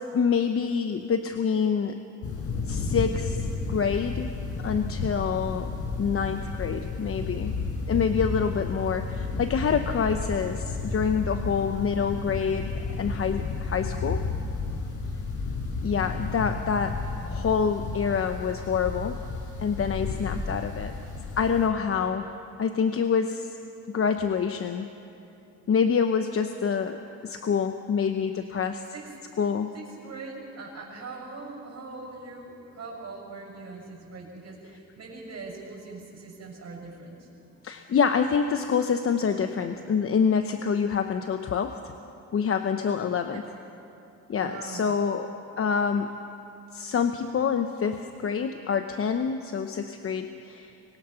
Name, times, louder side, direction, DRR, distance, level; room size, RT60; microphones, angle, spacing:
voice 1, 0.1-2.0 2.7-3.4 3.7-4.3 4.6-5.7 6.0-7.6 7.9-14.2 15.8-17.0 17.2-19.2 19.6-20.9 21.4-22.2 22.6-23.5 23.9-24.9 25.7-27.0 27.2-28.8 29.4-29.7 37.6-41.8 42.3-43.4 44.3-45.3 45.6-46.1 46.7-50.7, left 6 dB, 45° left, 7 dB, 1.0 m, -26 dB
sound 1, 2.2-21.7, left 3 dB, 80° left, 4.9 m, -32 dB
voice 2, 29.7-37.6 43.3-43.4 44.4-44.9, right 3 dB, 55° right, -3 dB, 6.4 m, -41 dB
25.0 x 21.5 x 5.8 m, 2.7 s
cardioid pair, 90°, 30 cm